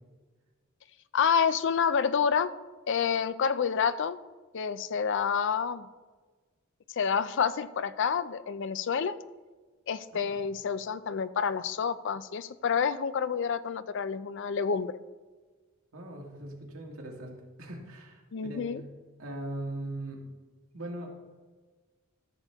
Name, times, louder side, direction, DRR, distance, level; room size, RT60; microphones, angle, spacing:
voice 1, 1.1-2.5 2.9-4.2 4.5-5.9 7.0-9.2 9.9-14.9 18.3-18.8, left 6 dB, 60° left, 14 dB, 0.4 m, -28 dB
voice 2, 15.9-18.8 19.2-20.2 20.7-21.1, right 1 dB, 85° right, 0 dB, 1.9 m, -40 dB
14.0 x 6.8 x 3.5 m, 1.3 s
head